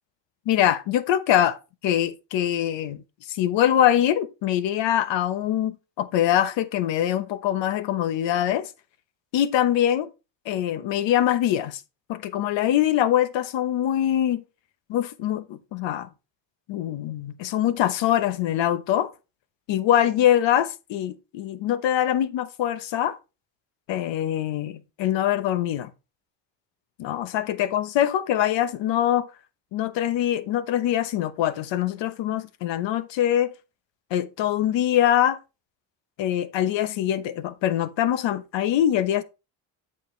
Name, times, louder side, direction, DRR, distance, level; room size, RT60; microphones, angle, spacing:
voice 1, 0.5-1.6 1.8-3.0 3.3-8.7 9.3-10.1 10.5-11.8 12.1-14.4 14.9-16.1 16.7-19.1 19.7-23.2 23.9-25.9 27.0-29.3 29.7-33.5 34.1-35.4 36.2-39.2, left 11 dB, 70° left, 1.1 m, -23 dB
7.7 x 7.4 x 3.2 m
cardioid pair, 90°, 46 cm